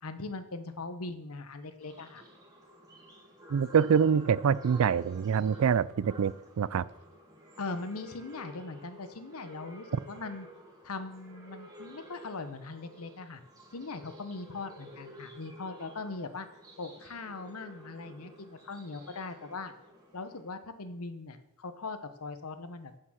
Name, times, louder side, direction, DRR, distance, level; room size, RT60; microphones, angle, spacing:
voice 1, 0.0-2.2 7.6-10.5 10.8-13.4 13.7-16.5 16.8-19.7 20.1-22.9, left 3 dB, 80° left, 10 dB, 1.0 m, -40 dB
sound 1, 1.8-20.4, equal, 15° right, 2.0 m, -52 dB
voice 2, 3.5-6.9, right 7 dB, 70° right, 21 dB, 0.3 m, -25 dB
8.7 x 7.6 x 6.3 m, 0.87 s
head